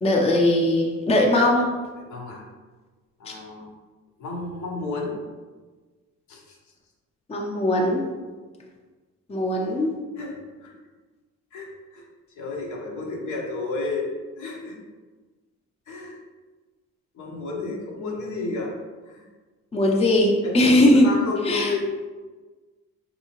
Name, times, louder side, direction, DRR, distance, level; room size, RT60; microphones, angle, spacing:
voice 1, 0.0-1.7 3.3-3.4 7.3-8.0 9.3-9.9 19.7-21.1 21.4-21.7, left 1 dB, 20° left, 0 dB, 0.6 m, -20 dB
voice 2, 2.0-2.5 3.2-3.7 4.2-5.2 6.3-6.6 10.2-10.8 11.5-12.0 12.4-14.1 14.4-14.8 15.9-16.2 17.1-18.8 19.1-19.2 20.4-21.8, left 3 dB, 70° left, 0 dB, 0.8 m, -31 dB
3.4 x 2.8 x 2.9 m, 1.3 s
cardioid pair, 90°, 30 cm